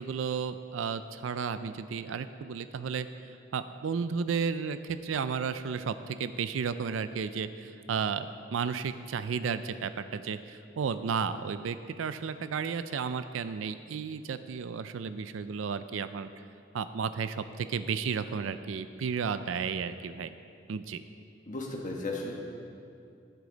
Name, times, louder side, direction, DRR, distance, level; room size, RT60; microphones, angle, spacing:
voice 1, 0.0-16.3 16.7-20.3 20.7-21.0, right 6 dB, 85° right, 12 dB, 0.4 m, -33 dB
voice 2, 21.5-22.3, left 2 dB, 40° left, -1 dB, 1.3 m, -35 dB
15.0 x 8.2 x 4.0 m, 2.5 s
head